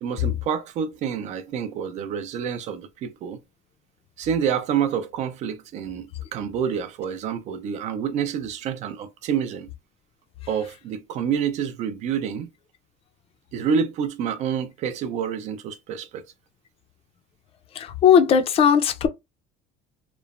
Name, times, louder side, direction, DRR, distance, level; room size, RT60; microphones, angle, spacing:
voice 1, 0.0-3.4 4.2-9.7 10.5-12.5 13.5-16.2, right 7 dB, 50° right, 0.5 m, -28 dB
voice 2, 17.8-19.1, left 7 dB, 40° left, 0.5 m, -17 dB
3.0 x 2.0 x 2.4 m
cardioid pair, 135°, 15 cm